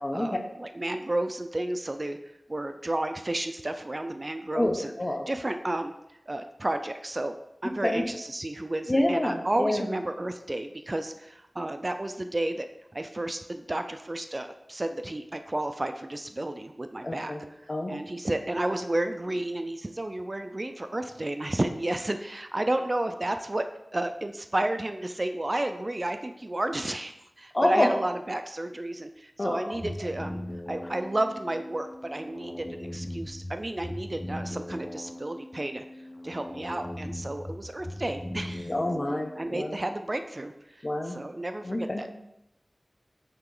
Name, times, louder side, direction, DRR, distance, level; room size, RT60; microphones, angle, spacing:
voice 1, 0.1-2.2 2.5-4.9 5.3-5.9 6.3-7.4 7.6-12.7 12.9-17.3 17.9-23.6 23.9-30.4 30.7-35.8 36.2-38.7 39.4-42.1, right 1 dB, 40° right, 7 dB, 0.4 m, -32 dB
voice 2, 4.5-5.3 7.8-8.1 8.9-9.9 17.0-17.4 17.7-17.9 27.5-27.9 29.4-29.6 38.7-39.8 40.8-41.2 41.6-42.0, left 1 dB, 40° left, 3 dB, 0.9 m, -27 dB
sound 1, 29.7-39.7, left 1 dB, 20° left, 0.5 m, -39 dB
8.7 x 2.9 x 3.8 m, 0.83 s
wide cardioid pair, 70°, 0 cm